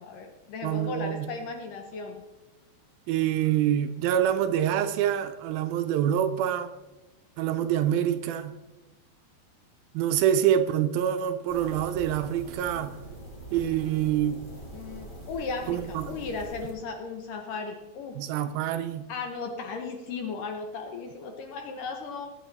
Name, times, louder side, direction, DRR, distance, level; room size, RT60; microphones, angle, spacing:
voice 1, 0.0-2.2 14.7-18.2 19.1-22.3, left 4 dB, 70° left, 2.2 m, -36 dB
voice 2, 0.6-1.3 3.1-6.7 7.4-8.5 9.9-13.0 13.5-14.4 15.7-16.1 18.2-19.1, right 10 dB, 80° right, 2.2 m, -26 dB
sound 1, 11.5-16.7, right 2 dB, 30° left, 0.9 m, -43 dB
20.0 x 8.5 x 4.1 m
omnidirectional pair, 4.7 m